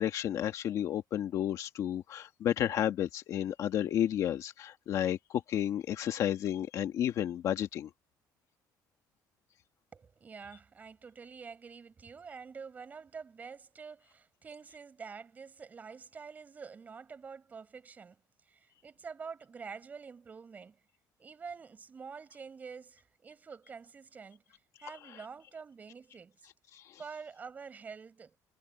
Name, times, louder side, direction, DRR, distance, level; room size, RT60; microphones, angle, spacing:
voice 1, 0.0-7.9 26.7-27.0, left 11 dB, 50° left, 1.5 m, -32 dB
voice 2, 9.9-20.8 21.2-26.5 27.0-28.4, right 5 dB, 25° right, 6.7 m, -47 dB
cardioid pair, 170°, 7 cm